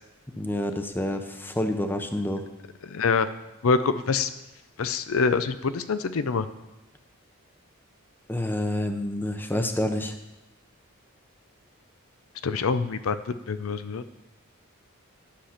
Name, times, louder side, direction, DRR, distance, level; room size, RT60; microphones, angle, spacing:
voice 1, 0.4-2.5 8.3-10.2, left 1 dB, 10° left, 6 dB, 0.7 m, -28 dB
voice 2, 2.9-3.3 3.6-4.3 4.8-6.5 12.4-14.0, left 4 dB, 75° left, 12 dB, 0.5 m, -25 dB
10.5 x 6.6 x 5.8 m, 0.97 s
head